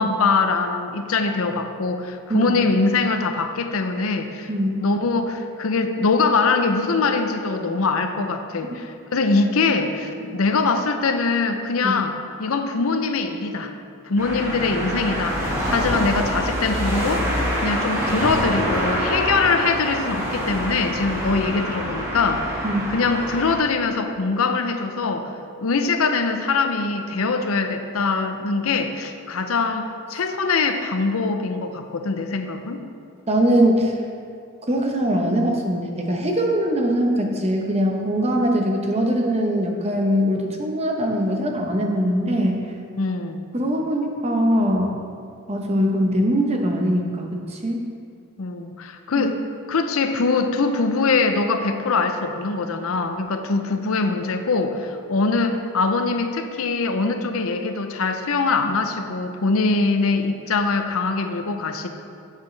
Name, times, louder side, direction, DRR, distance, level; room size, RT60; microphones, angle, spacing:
voice 1, 0.0-4.5 4.8-12.1 12.4-13.7 14.0-15.4 15.7-17.3 17.6-25.3 25.6-32.8 43.0-43.5 48.4-49.4 49.7-61.9, left 4 dB, 70° left, 7 dB, 0.6 m, -23 dB
voice 2, 4.5-4.8 11.8-12.0 22.6-22.9 33.3-33.9 34.7-42.6 43.5-45.0 45.5-47.8 49.1-49.3, equal, 30° right, 1 dB, 0.9 m, -21 dB
sound 1, 14.2-23.6, equal, 10° right, 1.7 m, -26 dB
9.9 x 7.4 x 3.3 m, 2.4 s
head